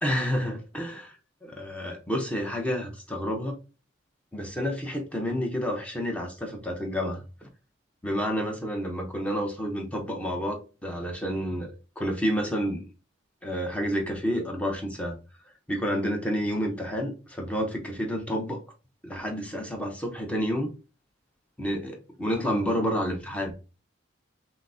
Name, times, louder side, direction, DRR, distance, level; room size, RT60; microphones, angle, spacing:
voice 1, 0.0-1.2 1.4-3.6 4.3-7.5 8.0-12.8 13.4-15.2 15.7-18.6 19.0-20.7 21.6-23.5, equal, 5° left, 0.6 m, -29 dB
5.7 x 2.0 x 2.6 m
head